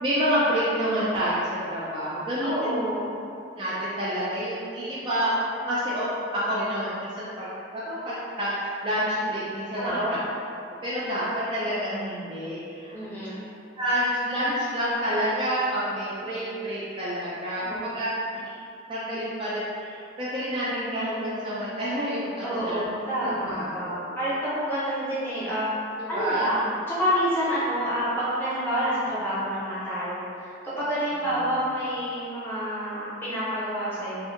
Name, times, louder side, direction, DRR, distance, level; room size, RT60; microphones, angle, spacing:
voice 1, 0.0-2.8 3.6-5.3 5.7-7.1 7.4-7.5 7.7-10.2 10.8-13.0 13.8-18.1 18.4-18.5 18.9-22.8 23.2-24.1 26.1-26.6, equal, 25° right, -9 dB, 0.3 m, -28 dB
voice 2, 2.4-3.1 9.8-10.2 12.9-13.5 17.5-18.1 22.4-25.8 26.1-34.3, equal, 10° left, -11 dB, 0.6 m, -28 dB
2.6 x 2.0 x 2.5 m, 2.6 s
head